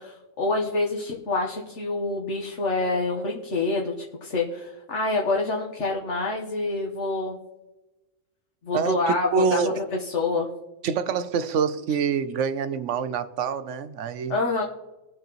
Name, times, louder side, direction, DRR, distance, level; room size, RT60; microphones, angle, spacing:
voice 1, 0.0-3.9 4.2-7.4 8.6-10.5 14.3-14.6, left 2 dB, 65° left, 1.6 m, -26 dB
voice 2, 8.7-9.7 10.8-14.3, right 6 dB, 70° right, 1.1 m, -26 dB
21.5 x 7.7 x 3.1 m
omnidirectional pair, 1.3 m